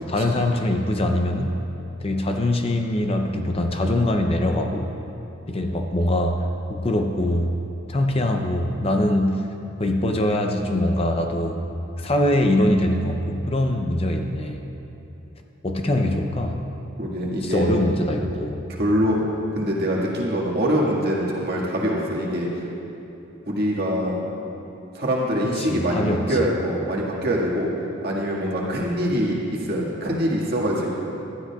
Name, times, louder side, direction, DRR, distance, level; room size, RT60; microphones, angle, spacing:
voice 1, 0.1-1.5 2.0-4.9 5.5-7.5 7.9-9.4 9.8-11.6 12.0-14.6 15.6-16.6 17.4-18.6 25.6-26.5, left 1 dB, 30° left, 4 dB, 0.6 m, -23 dB
voice 2, 17.0-17.8 18.7-19.2 19.5-22.5 23.5-24.2 24.9-27.7 28.0-30.9, equal, 50° right, -4 dB, 1.9 m, -24 dB
17.5 x 12.5 x 2.4 m, 2.9 s
head